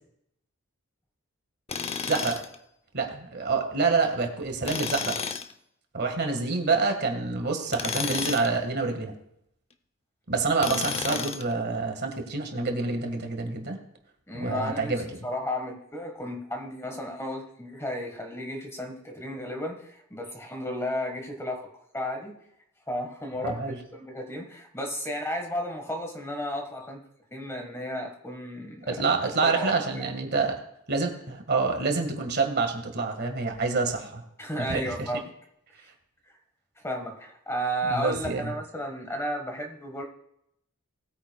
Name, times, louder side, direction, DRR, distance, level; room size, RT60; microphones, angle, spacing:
Tools, 1.7-2.5 4.6-5.5 7.7-8.6 10.6-11.5, left 5 dB, 30° left, 0.6 m, -31 dB
voice 1, 2.1-2.4 2.9-5.2 5.9-9.1 10.3-13.8 14.3-15.0 23.4-23.8 28.9-30.6 30.9-34.2 34.6-35.1 37.9-38.5, right 4 dB, 50° right, 4 dB, 1.7 m, -27 dB
voice 2, 14.3-14.9 15.2-22.4 22.9-23.6 23.9-27.0 27.3-28.9 29.4-30.0 34.4-35.3 36.3-36.4 36.8-40.0, equal, 10° left, 3 dB, 1.5 m, -33 dB
19.5 x 9.2 x 2.3 m, 0.75 s
head